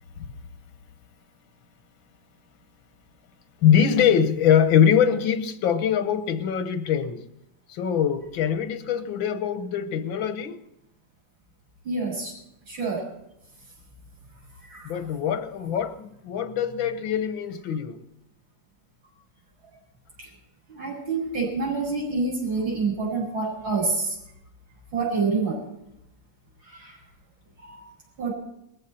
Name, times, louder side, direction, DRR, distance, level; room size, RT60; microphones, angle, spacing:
voice 1, 3.6-7.2 7.7-10.6 14.9-18.0, left 8 dB, 85° left, 1.9 m, -23 dB
voice 2, 11.9-12.3 12.7-13.0 14.7-14.9 20.2-20.3 20.7-24.1 24.9-25.6 26.7-27.0 27.7-27.9 28.2-28.3, right 4 dB, 80° right, 7.3 m, -27 dB
20.0 x 15.5 x 4.3 m
omnidirectional pair, 2.1 m